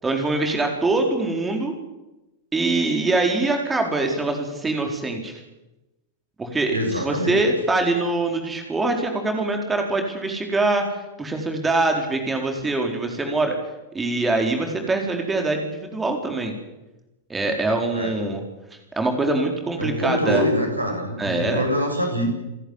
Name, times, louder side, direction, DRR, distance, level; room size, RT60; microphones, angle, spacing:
voice 1, 0.0-1.7 2.5-5.3 6.4-13.5 13.9-16.5 17.3-18.4 19.0-20.4 21.2-21.6, right 2 dB, 15° right, 3 dB, 4.3 m, -23 dB
voice 2, 6.7-7.4 17.9-18.1 19.8-22.3, equal, 85° right, 3 dB, 7.5 m, -24 dB
28.5 x 11.5 x 9.9 m, 1.0 s
figure-of-eight pair, 90°, 0 cm